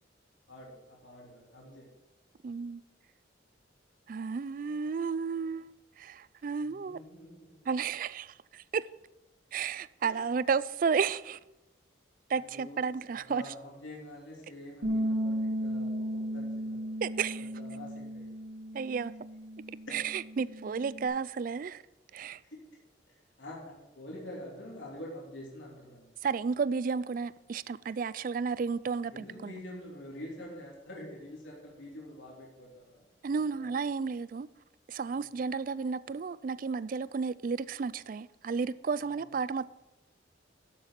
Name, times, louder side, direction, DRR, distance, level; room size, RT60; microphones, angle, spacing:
voice 1, 0.5-1.9 6.6-7.7 10.1-10.2 12.4-12.8 13.3-18.4 22.4-22.6 23.1-26.1 29.1-33.7 35.1-35.3 39.0-39.3, left 1 dB, 80° left, 3.4 m, -47 dB
voice 2, 2.4-2.8 4.1-7.0 7.7-8.9 9.5-11.4 12.3-13.5 17.0-17.5 18.7-19.1 19.9-21.8 22.1-22.4 26.2-29.5 33.2-34.5 34.9-39.7, right 5 dB, 45° right, 0.3 m, -32 dB
Bass guitar, 14.8-21.1, equal, 80° right, 3.0 m, -35 dB
12.0 x 7.5 x 5.8 m
head